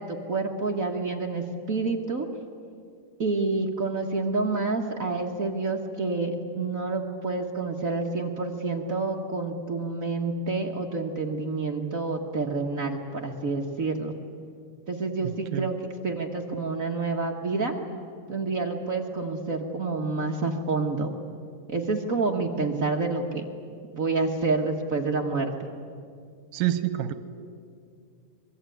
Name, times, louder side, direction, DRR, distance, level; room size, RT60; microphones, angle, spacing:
voice 1, 0.0-2.3 3.2-14.1 14.9-17.8 18.3-21.1 21.7-23.4 23.9-25.7, right 3 dB, 60° right, 2 dB, 0.8 m, -28 dB
voice 2, 15.2-15.7 26.5-27.1, right 13 dB, 85° right, 12 dB, 2.5 m, -27 dB
25.0 x 22.0 x 9.3 m, 2.3 s
omnidirectional pair, 3.8 m